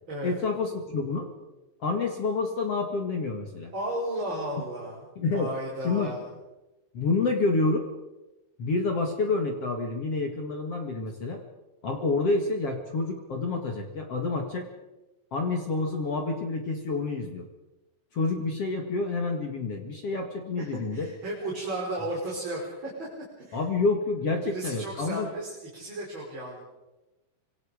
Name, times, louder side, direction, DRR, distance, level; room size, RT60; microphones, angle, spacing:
voice 1, 0.2-1.3 1.8-3.7 5.2-5.5 5.8-6.1 6.9-7.9 8.6-11.4 11.8-14.7 15.3-17.4 18.1-21.1 23.5-25.3, left 3 dB, 50° left, 3 dB, 1.9 m, -28 dB
voice 2, 3.7-5.0 5.3-6.3 20.6-23.1 23.4-23.6 24.4-26.6, right 1 dB, 25° right, -4 dB, 5.2 m, -34 dB
26.0 x 24.0 x 5.1 m, 1.0 s
omnidirectional pair, 5.6 m